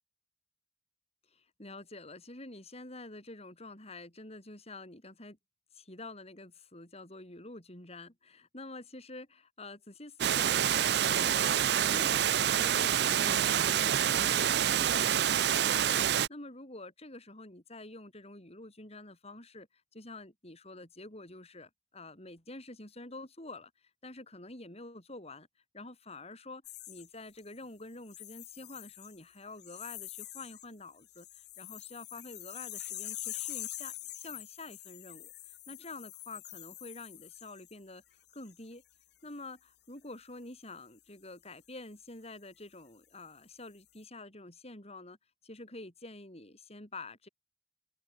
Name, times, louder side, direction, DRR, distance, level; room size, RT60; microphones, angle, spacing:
voice 1, 1.3-5.4 5.7-19.7 19.9-25.5 25.7-26.6 26.9-38.0 38.3-38.8 39.2-45.2 45.4-47.3, left 2 dB, 35° left, 6.9 m, -48 dB
Water, 10.2-16.3, right 9 dB, 65° right, 0.5 m, -27 dB
sound 1, 26.6-27.6 28.1-29.2 29.6-30.6 31.0-37.8 38.3-38.6, left 15 dB, 65° left, 1.7 m, -45 dB
head